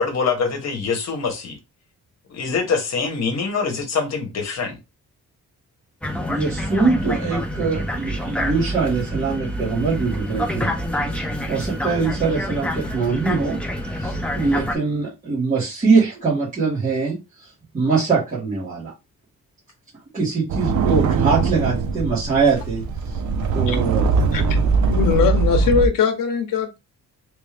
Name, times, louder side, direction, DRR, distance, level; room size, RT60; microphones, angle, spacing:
voice 1, 0.0-1.6 2.3-4.8, left 5 dB, 55° left, 1.1 m, -24 dB
sound 1, 6.0-14.7, equal, 5° left, 0.5 m, -27 dB
voice 2, 6.3-10.7 11.5-13.6 14.0-17.2 17.7-18.9 20.1-22.8 23.5-24.7, right 4 dB, 25° right, 1.5 m, -22 dB
sound 2, 20.5-25.9, right 4 dB, 60° right, 0.6 m, -21 dB
voice 3, 24.9-26.8, left 6 dB, 85° left, 0.8 m, -21 dB
3.2 x 2.6 x 3.3 m
wide cardioid pair, 165°, 32 cm